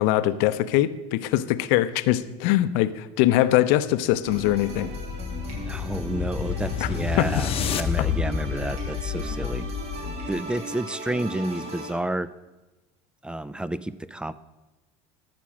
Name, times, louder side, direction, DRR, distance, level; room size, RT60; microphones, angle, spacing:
voice 1, 0.0-4.9 6.8-6.9 7.2-7.3, left 14 dB, 70° left, 13 dB, 0.6 m, -22 dB
sound 1, 4.2-11.9, right 2 dB, 40° right, 2.3 m, -37 dB
sound 2, 4.4-10.5, left 7 dB, 35° left, 0.8 m, -30 dB
sound 3, 5.5-5.7 7.1-7.4 8.8-9.0 10.2-11.1, right 2 dB, 55° right, 3.6 m, -50 dB
voice 2, 5.7-9.7 10.3-12.3 13.2-14.3, right 1 dB, 5° right, 17 dB, 0.3 m, -30 dB
13.0 x 6.1 x 6.1 m, 1.1 s
supercardioid pair, 105°, 16 cm